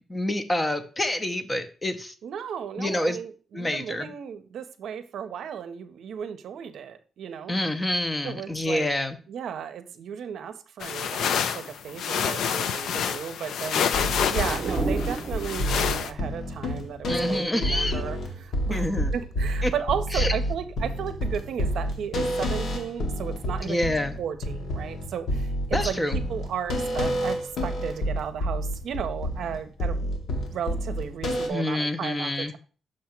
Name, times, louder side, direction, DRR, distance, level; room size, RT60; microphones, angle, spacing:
voice 1, 0.1-2.1 2.8-3.2 3.5-4.1 7.5-9.2 17.1-18.0 18.7-19.1 19.6-19.7 20.1-20.3 23.6-24.2 25.7-26.2 31.5-32.5, left 1 dB, 15° left, 9 dB, 0.5 m, -27 dB
voice 2, 2.2-7.5 8.2-8.9 9.3-18.8 19.1-23.8 24.2-30.1 30.5-32.6, right 8 dB, 70° right, 9 dB, 0.6 m, -34 dB
sound 1, 10.8-16.1, left 7 dB, 80° left, 0.4 m, -28 dB
sound 2, 13.6-16.3, right 3 dB, 40° right, 0.8 m, -34 dB
sound 3, 13.9-31.5, equal, 60° left, 1.2 m, -29 dB
6.3 x 2.9 x 5.7 m, 0.38 s
wide cardioid pair, 155°, 0 cm